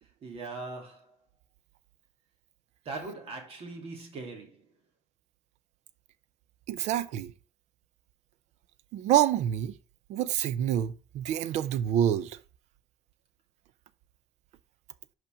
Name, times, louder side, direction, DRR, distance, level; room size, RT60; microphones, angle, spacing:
voice 1, 0.2-1.0 2.8-4.6, right 3 dB, 60° right, 2.6 m, -40 dB
voice 2, 6.7-7.3 8.9-9.8 10.1-12.4, right 11 dB, 85° right, 0.5 m, -27 dB
5.8 x 5.6 x 5.1 m
cardioid pair, 95°, 11 cm